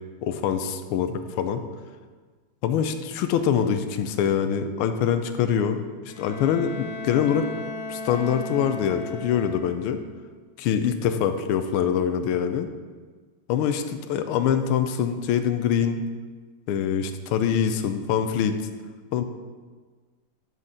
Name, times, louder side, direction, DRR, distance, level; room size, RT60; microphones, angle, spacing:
voice 1, 0.2-1.6 2.6-7.5 7.9-10.0 10.6-12.7 13.5-16.0 16.7-18.6 19.1-19.2, left 8 dB, 85° left, 8 dB, 1.5 m, -24 dB
Bowed string instrument, 6.1-10.0, left 3 dB, 60° left, 1.0 m, -36 dB
12.0 x 4.2 x 5.0 m, 1.4 s
omnidirectional pair, 2.4 m